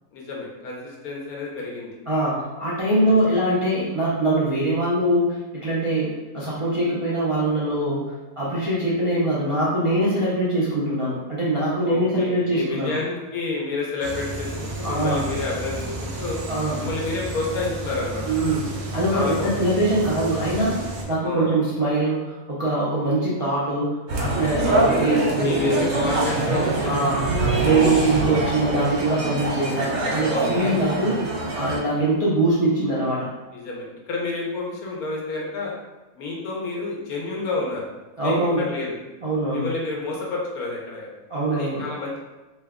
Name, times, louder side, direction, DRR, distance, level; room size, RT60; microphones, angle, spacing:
voice 1, 0.1-2.0 3.0-3.4 11.8-16.4 16.8-18.2 19.1-19.5 21.2-21.5 25.4-27.7 33.5-35.7 36.2-37.8 38.2-39.0 39.5-41.1 41.5-42.2, left 3 dB, 90° left, -2 dB, 1.3 m, -30 dB
voice 2, 2.1-8.0 8.4-12.9 14.8-15.2 16.5-16.9 18.2-25.9 26.8-27.2 27.6-31.2 31.5-33.3 38.2-38.6 39.2-39.7 41.3-41.8, right 1 dB, 40° right, -9 dB, 0.4 m, -23 dB
sound 1, 14.0-21.0, right 2 dB, 80° right, 1.2 m, -32 dB
sound 2, 24.1-31.8, right 2 dB, 65° right, 1.1 m, -24 dB
3.1 x 2.2 x 3.5 m, 1.1 s
omnidirectional pair, 1.5 m